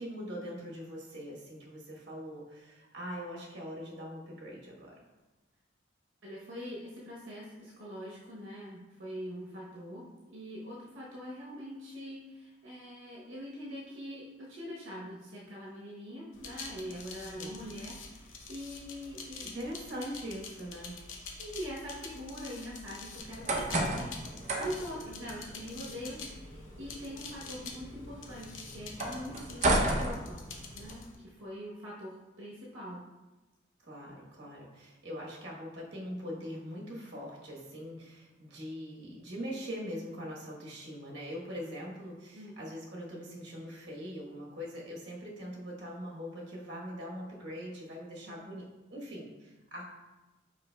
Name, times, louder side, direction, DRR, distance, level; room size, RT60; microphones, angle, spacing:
voice 1, 0.0-5.0 17.3-17.7 19.5-21.0 33.8-49.8, equal, 55° right, -3 dB, 1.2 m, -42 dB
voice 2, 6.2-19.5 21.4-24.1 24.6-30.4 30.7-33.0 42.3-42.6, equal, 75° right, -5 dB, 0.9 m, -43 dB
sound 1, 16.3-31.2, left 4 dB, 75° left, 0.7 m, -47 dB
sound 2, 23.2-30.9, right 1 dB, 35° right, 0.6 m, -34 dB
5.1 x 4.6 x 2.2 m, 1.1 s
head